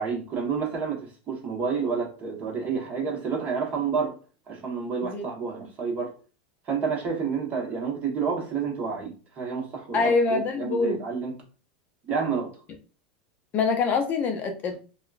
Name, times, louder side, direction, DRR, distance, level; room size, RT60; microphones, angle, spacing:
voice 1, 0.0-4.1 4.5-6.1 6.7-11.3 12.1-12.5, right 5 dB, 35° right, 1.2 m, -29 dB
voice 2, 9.9-11.0 13.5-14.8, left 4 dB, 35° left, 0.5 m, -24 dB
2.8 x 2.2 x 2.4 m
supercardioid pair, 120°, 5 cm